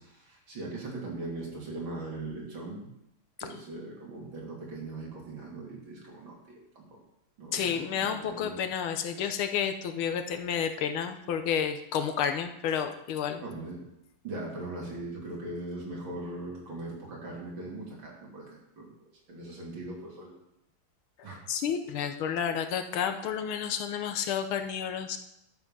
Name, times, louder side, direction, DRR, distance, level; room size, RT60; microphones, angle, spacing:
voice 1, 0.0-2.9 3.4-7.0 7.4-8.6 13.4-13.8 14.2-18.9 19.3-20.4 21.2-21.4, right 2 dB, 65° right, -3 dB, 3.5 m, -40 dB
voice 2, 7.5-13.4 21.5-25.2, left 8 dB, 80° left, 8 dB, 1.7 m, -30 dB
11.5 x 7.1 x 5.5 m, 0.84 s
omnidirectional pair, 2.3 m